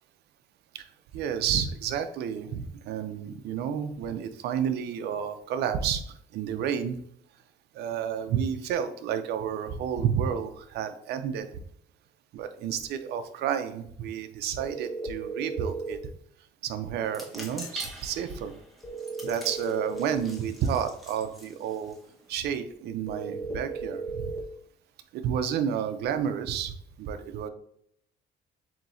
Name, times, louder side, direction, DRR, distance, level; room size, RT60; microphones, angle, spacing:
voice 1, 1.1-6.0 6.3-7.0 7.7-11.5 12.3-16.0 16.6-18.5 19.2-22.0 22.3-24.3 25.1-26.7 27.0-27.5, right 8 dB, 75° right, 9 dB, 0.6 m, -30 dB
sound 1, 14.6-16.0 18.8-20.2 23.1-24.5, right 3 dB, 20° left, 1.0 m, -35 dB
sound 2, 17.0-22.4, equal, ahead, 1.2 m, -45 dB
7.3 x 2.8 x 2.6 m, 0.69 s
cardioid pair, 110°, 17 cm